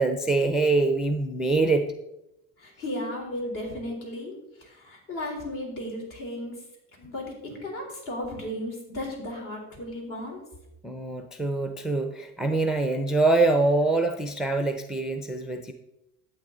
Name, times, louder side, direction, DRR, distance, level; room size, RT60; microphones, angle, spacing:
voice 1, 0.0-1.9 10.8-15.7, right 3 dB, ahead, 6 dB, 0.4 m, -24 dB
voice 2, 2.6-4.3 4.6-6.6 7.0-10.4, left 1 dB, 50° left, 1 dB, 3.9 m, -35 dB
12.0 x 8.2 x 3.9 m, 0.88 s
cardioid pair, 130°, 39 cm